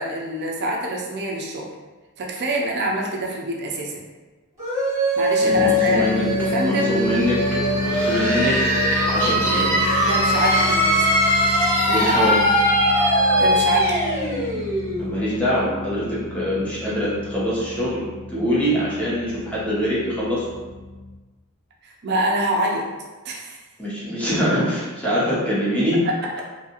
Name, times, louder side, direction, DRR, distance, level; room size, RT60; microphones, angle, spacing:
voice 1, 0.0-1.7 2.2-4.0 5.2-6.1 6.4-6.9 10.0-11.1 13.3-14.0 21.8-22.9 23.2-23.6 26.0-26.1, right 1 dB, 50° right, -1 dB, 0.4 m, -25 dB
sound 1, 4.6-16.1, equal, 15° right, 1.2 m, -21 dB
voice 2, 5.4-6.3 6.6-7.4 7.8-8.6 9.1-9.7 11.9-12.4 15.0-18.0 18.3-20.5 23.8-26.0, equal, 5° left, -9 dB, 0.8 m, -24 dB
sound 2, 5.5-21.2, left 3 dB, 45° left, 0.5 m, -31 dB
2.7 x 2.3 x 2.8 m, 1.2 s
head